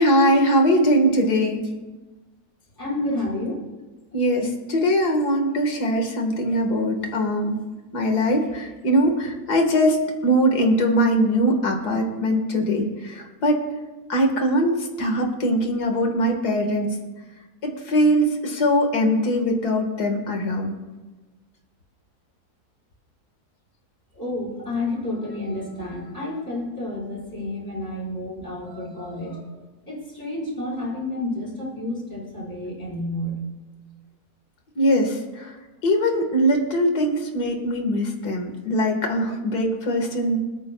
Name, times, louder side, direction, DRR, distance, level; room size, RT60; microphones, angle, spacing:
voice 1, 0.0-1.7 4.1-7.6 7.9-13.6 14.1-16.9 17.6-20.8 34.8-35.5 35.8-40.4, equal, 90° left, 3 dB, 2.3 m, -21 dB
voice 2, 2.8-3.6 24.1-29.6 29.9-33.4, left 1 dB, 10° left, -5 dB, 4.9 m, -30 dB
27.0 x 9.2 x 2.3 m, 1.2 s
omnidirectional pair, 1.6 m